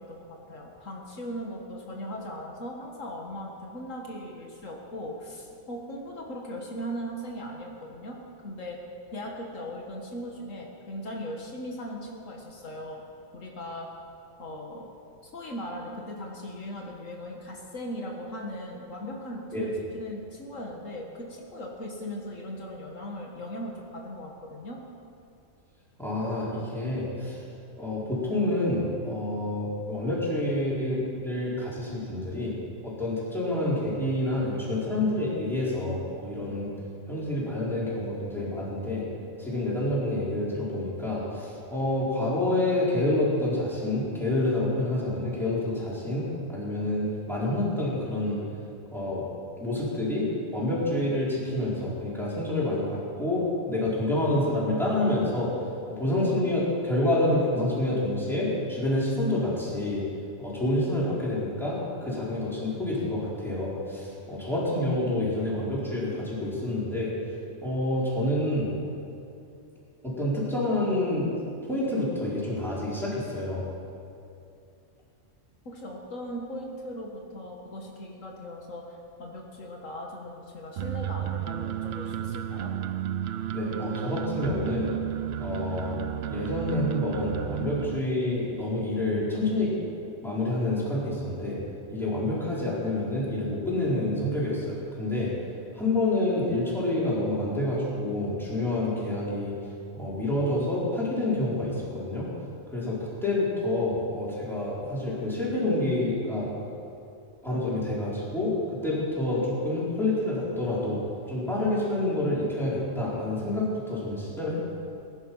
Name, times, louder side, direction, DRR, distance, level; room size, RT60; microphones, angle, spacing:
voice 1, 0.0-8.2 8.4-8.8 9.1-13.0 13.3-13.9 14.4-14.9 15.2-24.8 75.7-82.8, equal, 75° left, -1 dB, 2.1 m, -38 dB
voice 2, 26.0-27.4 27.8-32.6 32.8-36.7 37.1-39.1 39.4-48.4 48.9-49.2 49.6-55.5 55.9-60.0 60.4-67.1 67.6-68.7 70.0-73.7 83.5-84.9 85.4-86.0 86.3-89.7 90.2-91.6 91.9-95.3 95.7-99.5 99.9-102.3 102.7-106.5 107.4-108.6 108.8-111.0 111.3-114.6, left 1 dB, ahead, -8 dB, 4.6 m, -28 dB
sound 1, 80.8-88.0, right 11 dB, 60° right, 0.7 m, -32 dB
20.5 x 11.0 x 5.7 m, 2.6 s
omnidirectional pair, 1.3 m